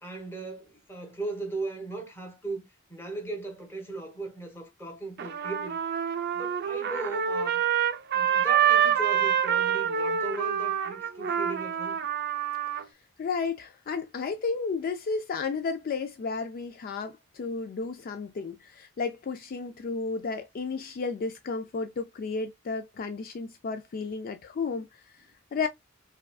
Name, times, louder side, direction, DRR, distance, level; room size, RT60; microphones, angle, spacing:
voice 1, 0.0-2.6 2.9-5.8 6.3-7.6 8.1-12.0, right 2 dB, 10° left, 1.2 m, -38 dB
Trumpet, 5.2-12.8, right 9 dB, 50° right, 0.5 m, -26 dB
voice 2, 12.7-25.7, left 4 dB, 45° left, 0.3 m, -33 dB
4.8 x 2.3 x 2.3 m
head